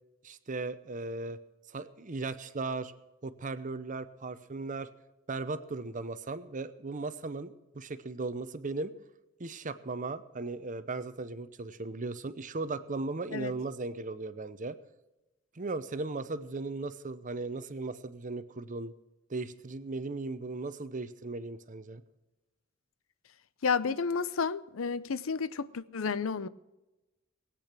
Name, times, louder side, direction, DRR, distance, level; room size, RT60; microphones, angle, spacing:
voice 1, 0.2-1.4 1.7-2.9 3.2-4.9 5.3-8.9 9.4-14.8 15.5-18.9 19.3-22.0, right 3 dB, 40° right, 0.8 m, -37 dB
voice 2, 23.6-26.5, left 5 dB, 80° left, 0.6 m, -31 dB
19.5 x 8.6 x 6.0 m
head